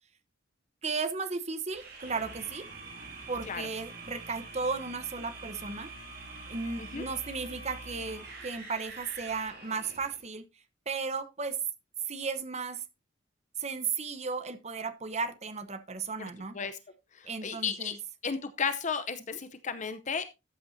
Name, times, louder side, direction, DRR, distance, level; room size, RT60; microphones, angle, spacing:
voice 1, 0.8-2.7 3.3-5.9 6.5-10.4 10.9-11.6 12.1-12.8 13.6-16.6 17.3-18.0, right 4 dB, 35° right, 1.0 m, -35 dB
sound 1, 1.7-10.2, right 3 dB, 55° right, 4.1 m, -45 dB
voice 2, 17.1-18.0 18.2-20.3, left 6 dB, 40° left, 0.7 m, -34 dB
13.5 x 8.7 x 2.7 m
head